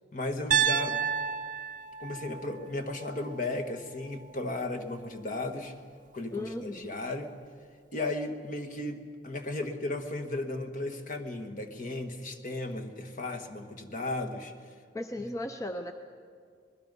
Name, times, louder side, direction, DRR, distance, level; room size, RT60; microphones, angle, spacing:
voice 1, 0.1-1.0 2.0-5.7 6.1-7.3 7.9-14.5, left 2 dB, 45° left, 6 dB, 1.6 m, -35 dB
Piano, 0.5-4.6, right 8 dB, 45° right, 0.6 m, -32 dB
voice 2, 6.3-6.9 14.9-15.9, left 1 dB, 20° left, 5 dB, 0.7 m, -36 dB
25.0 x 21.0 x 5.4 m, 2.1 s
head